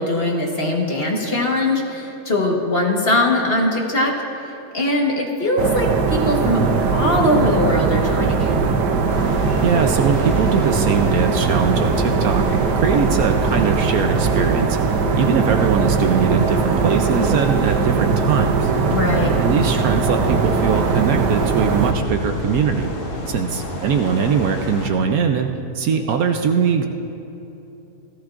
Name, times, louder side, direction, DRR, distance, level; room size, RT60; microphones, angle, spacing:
voice 1, 0.0-4.1 4.7-6.6 6.9-8.7 18.9-19.4, left 1 dB, 40° left, 0 dB, 1.4 m, -20 dB
sound 1, 5.6-21.9, right 5 dB, 85° right, 1.4 m, -20 dB
sound 2, 9.1-24.9, left 1 dB, 55° left, 1.6 m, -31 dB
voice 2, 9.6-14.8 15.2-18.7 19.4-22.9 23.3-26.9, right 6 dB, 70° right, 5 dB, 1.0 m, -21 dB
17.0 x 15.0 x 2.5 m, 3.0 s
omnidirectional pair, 1.7 m